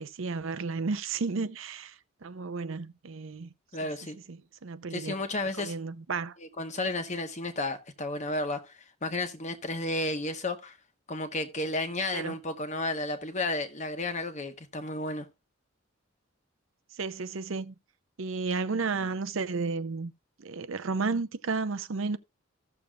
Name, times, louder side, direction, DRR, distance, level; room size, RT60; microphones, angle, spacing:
voice 1, 0.0-3.5 3.8-3.9 4.3-5.1 5.6-6.4 12.1-12.4 16.9-17.7 18.2-20.1 20.4-22.2, right 4 dB, 70° right, 0.6 m, -33 dB
voice 2, 3.7-4.2 4.9-5.7 6.6-10.8 11.1-15.3, left 2 dB, 35° left, 1.1 m, -32 dB
15.0 x 6.9 x 2.4 m
head